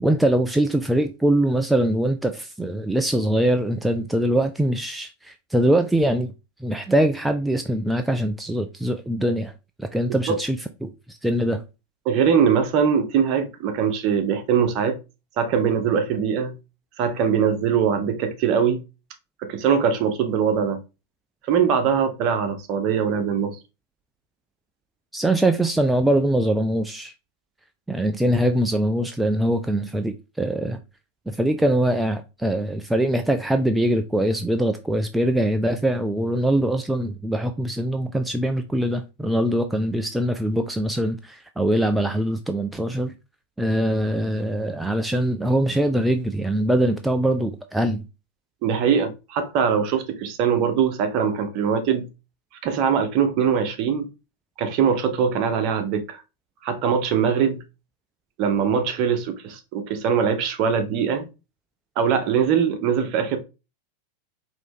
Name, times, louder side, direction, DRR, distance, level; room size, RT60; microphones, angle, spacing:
voice 1, 0.0-6.3 6.6-9.5 9.8-11.6 25.1-27.1 27.9-30.8 31.3-43.1 43.6-48.0, right 1 dB, 5° right, 0.3 m, -22 dB
voice 2, 12.0-15.0 15.4-16.6 17.0-18.8 19.5-20.8 21.5-23.6 48.6-52.0 52.6-54.1 54.6-56.2 56.6-57.6 58.4-61.3 62.0-63.4, right 7 dB, 40° right, 0.9 m, -22 dB
4.9 x 2.8 x 3.7 m
figure-of-eight pair, 90°, 0 cm